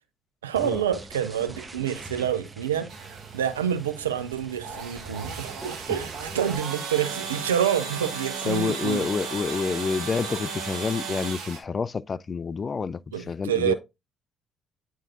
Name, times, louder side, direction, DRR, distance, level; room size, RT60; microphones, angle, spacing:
voice 1, 0.4-2.9 3.3-9.1 13.1-13.7, right 9 dB, 85° right, 0.5 m, -27 dB
sound 1, 0.6-6.6, right 3 dB, 25° right, 1.0 m, -43 dB
sound 2, 2.9-11.6, right 5 dB, 65° right, 1.3 m, -35 dB
voice 2, 8.4-13.0 13.3-13.7, left 5 dB, 40° left, 0.3 m, -28 dB
8.9 x 4.5 x 2.5 m
hypercardioid pair, 45°, 0 cm